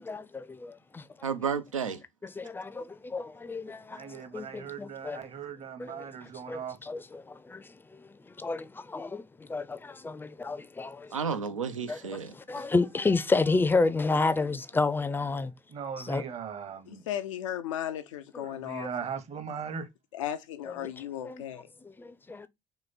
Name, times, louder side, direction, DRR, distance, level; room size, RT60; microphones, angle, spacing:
voice 1, 0.0-1.0 2.4-5.2 5.8-6.1 6.5-11.4 11.9-12.0 12.3-15.5 16.0-16.2 18.3-18.5 21.2-21.4 21.8-22.5, left 3 dB, 15° left, 0.5 m, -31 dB
voice 2, 1.2-2.0 11.1-12.6, right 6 dB, 85° right, 0.4 m, -32 dB
voice 3, 3.9-6.8 15.7-17.0 18.4-19.9, right 6 dB, 40° right, 0.9 m, -39 dB
voice 4, 16.9-18.9 20.1-21.7, left 11 dB, 75° left, 0.4 m, -35 dB
3.1 x 3.0 x 4.0 m
figure-of-eight pair, 50°, 16 cm